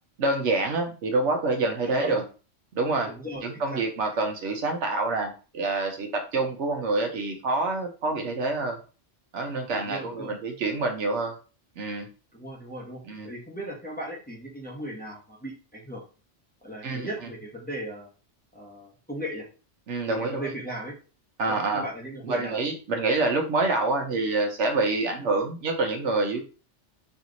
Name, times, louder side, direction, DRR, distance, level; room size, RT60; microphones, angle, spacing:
voice 1, 0.2-2.2 2.7-3.1 3.4-8.8 9.3-11.3 11.8-12.1 13.1-13.3 16.8-17.1 19.9-20.4 21.4-21.8 22.2-26.4, right 3 dB, 75° right, 4 dB, 1.1 m, -27 dB
voice 2, 1.8-2.2 3.1-3.8 4.1-4.2 9.7-10.3 12.3-13.0 13.2-16.0 16.6-18.1 18.5-19.5 20.1-20.9 21.5-22.5 22.9-23.0, right 1 dB, 10° left, -2 dB, 1.0 m, -37 dB
3.3 x 3.0 x 3.8 m, 0.35 s
omnidirectional pair, 1.2 m